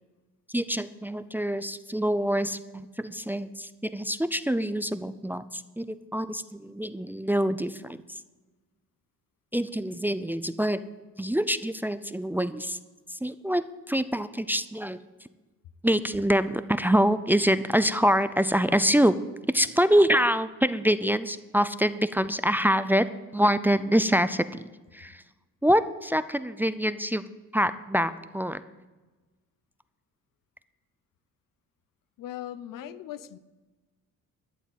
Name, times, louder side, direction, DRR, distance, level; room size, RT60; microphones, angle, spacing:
voice 1, 0.5-8.2 9.5-10.8 11.2-12.8 13.1-15.0 15.8-19.2 19.5-24.6 24.9-25.2 25.6-27.2 27.5-28.6 32.8-33.0, equal, 5° right, 13 dB, 0.4 m, -25 dB
voice 2, 32.2-33.4, left 12 dB, 80° left, 15 dB, 0.7 m, -39 dB
12.5 x 7.2 x 9.2 m, 1.2 s
cardioid pair, 110°, 32 cm